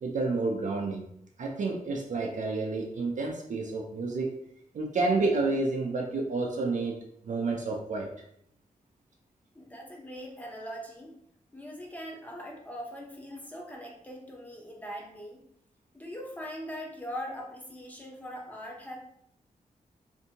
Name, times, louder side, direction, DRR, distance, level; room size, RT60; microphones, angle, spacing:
voice 1, 0.0-1.0 1.4-4.3 4.7-7.0 7.2-8.1, right 3 dB, 60° right, 0 dB, 0.4 m, -29 dB
voice 2, 9.5-11.1 11.5-15.4 15.9-19.0, equal, 10° left, -1 dB, 0.7 m, -41 dB
2.6 x 2.5 x 2.7 m, 0.72 s
wide cardioid pair, 110°, 14 cm